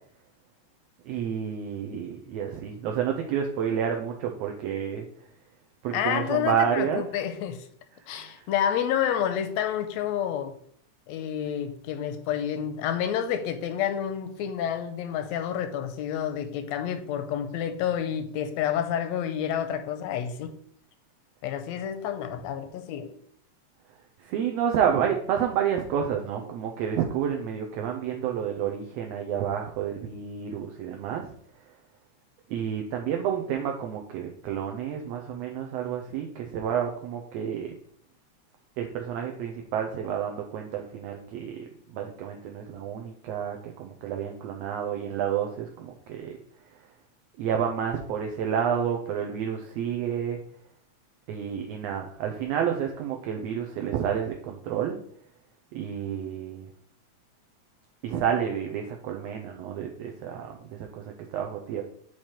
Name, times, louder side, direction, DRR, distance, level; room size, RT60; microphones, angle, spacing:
voice 1, 1.0-5.1 5.8-7.0 7.9-8.4 24.2-31.3 32.5-37.7 38.8-46.4 47.4-50.4 51.3-55.0 55.7-56.7 58.0-61.8, right 8 dB, 75° right, 1.6 m, -30 dB
voice 2, 5.9-7.7 8.1-10.5 11.1-20.5 21.4-23.1, left 9 dB, 80° left, 1.6 m, -29 dB
8.7 x 3.2 x 4.3 m
omnidirectional pair, 3.4 m